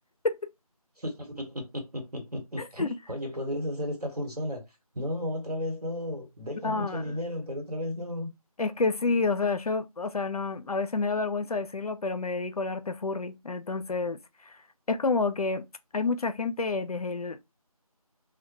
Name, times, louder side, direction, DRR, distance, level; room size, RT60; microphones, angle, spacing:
voice 1, 1.0-4.6 4.9-8.3, left 1 dB, 85° right, 1.1 m, -34 dB
voice 2, 2.6-2.9 6.6-7.2 8.6-14.2 14.5-14.6 14.9-15.6 15.9-17.4, left 3 dB, 70° left, 0.4 m, -29 dB
2.1 x 2.1 x 2.8 m
figure-of-eight pair, 165°, 19 cm